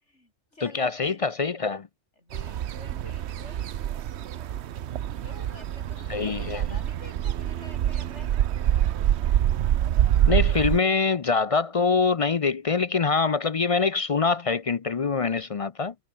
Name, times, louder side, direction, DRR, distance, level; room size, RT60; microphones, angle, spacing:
voice 1, 0.0-1.2 2.2-3.7 5.2-8.3, left 1 dB, 70° left, 7.1 m, -49 dB
voice 2, 0.6-1.9 6.1-6.7 10.3-15.9, left 4 dB, 45° left, 0.5 m, -24 dB
sound 1, 2.3-10.8, right 11 dB, 65° right, 0.9 m, -26 dB
omnidirectional pair, 1.2 m